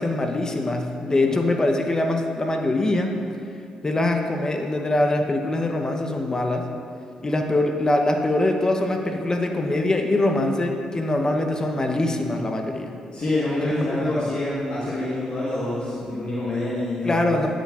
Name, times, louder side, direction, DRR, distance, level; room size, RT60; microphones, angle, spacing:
voice 1, 0.0-3.2 3.8-6.7 7.2-12.9 13.6-14.3 17.0-17.5, left 2 dB, 30° left, 4 dB, 0.7 m, -23 dB
voice 2, 1.0-1.4 13.1-17.5, left 1 dB, 50° left, -8 dB, 1.3 m, -27 dB
9.9 x 7.4 x 2.4 m, 2.5 s
supercardioid pair, 60°, 2 cm